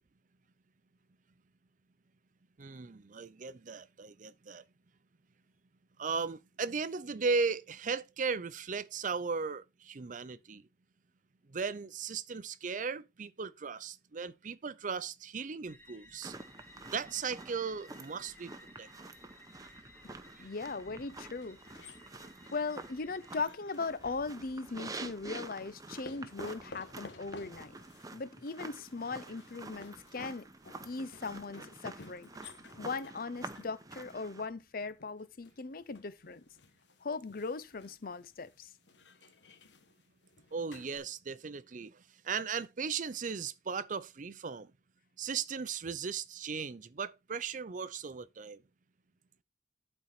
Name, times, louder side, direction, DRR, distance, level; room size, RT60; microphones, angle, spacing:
voice 1, 2.6-4.6 6.0-10.6 11.5-16.3 16.9-18.5 18.8-18.9 20.4-20.5 40.5-44.7 45.2-48.6, right 5 dB, 50° right, 0.6 m, -37 dB
sound 1, 15.7-23.4, left 1 dB, 10° left, 1.8 m, -58 dB
sound 2, 16.2-34.5, right 3 dB, 20° right, 0.8 m, -48 dB
voice 2, 20.0-21.6 22.5-27.8 28.1-30.4 30.8-32.3 32.8-36.4 37.0-38.7, left 4 dB, 55° left, 0.7 m, -39 dB
sound 3, 21.3-24.5 25.2-41.0, left 3 dB, 90° left, 1.2 m, -55 dB
12.0 x 4.5 x 4.3 m
head